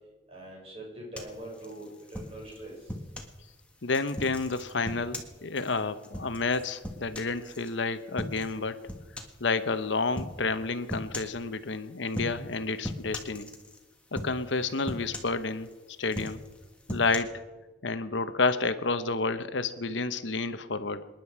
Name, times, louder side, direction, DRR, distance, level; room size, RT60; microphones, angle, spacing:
voice 1, 0.3-2.8, right 1 dB, 35° right, -3 dB, 6.3 m, -43 dB
sound 1, 1.2-3.4 3.9-7.7 8.2-8.6 8.9-9.4 10.2-10.4 10.9-11.4 12.1-12.5 12.8-13.8 14.2-14.5 14.9-15.7 16.1-17.2, left 1 dB, 5° left, 1.6 m, -39 dB
voice 2, 3.8-8.9 9.4-13.5 14.1-15.7 16.0-16.4 16.9-17.4 17.8-21.1, left 3 dB, 80° left, 11 dB, 0.9 m, -30 dB
27.0 x 10.5 x 4.8 m, 1.2 s
head